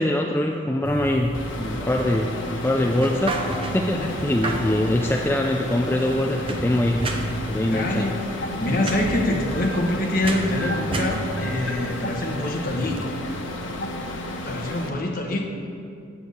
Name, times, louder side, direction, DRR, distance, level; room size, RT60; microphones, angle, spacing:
voice 1, 0.0-7.1 7.5-8.1, left 1 dB, 10° left, 1 dB, 0.3 m, -23 dB
sound 1, 0.8-13.0, right 2 dB, 30° right, 0.7 m, -34 dB
sound 2, 1.3-14.9, left 1 dB, 85° left, 1.2 m, -33 dB
voice 2, 7.6-13.1 14.4-15.4, left 1 dB, 45° left, 1 dB, 1.2 m, -25 dB
sound 3, 8.4-14.6, equal, 70° left, 0.8 m, -35 dB
8.9 x 6.9 x 6.4 m, 2.4 s
head